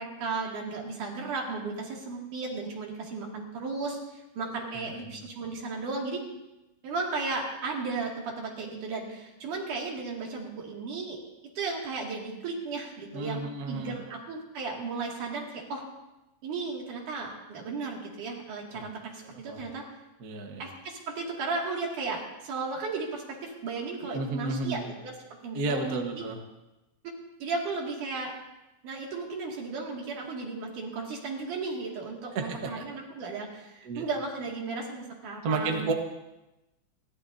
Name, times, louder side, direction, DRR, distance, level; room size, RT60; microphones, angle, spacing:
voice 1, 0.0-6.2 6.8-11.2 11.6-15.8 16.4-19.8 20.6-25.1 25.4-26.2 27.4-28.3 28.8-35.9, right 4 dB, 85° right, -1 dB, 3.8 m, -35 dB
voice 2, 4.7-5.2 13.1-13.9 18.7-18.8 19.5-19.6 20.2-20.7 24.0-24.9 25.5-26.4 32.3-32.5 32.7-32.8 33.8-34.0 35.4-35.9, right 3 dB, 45° right, 3 dB, 1.3 m, -32 dB
30.0 x 12.5 x 2.7 m, 1.0 s
omnidirectional pair, 3.5 m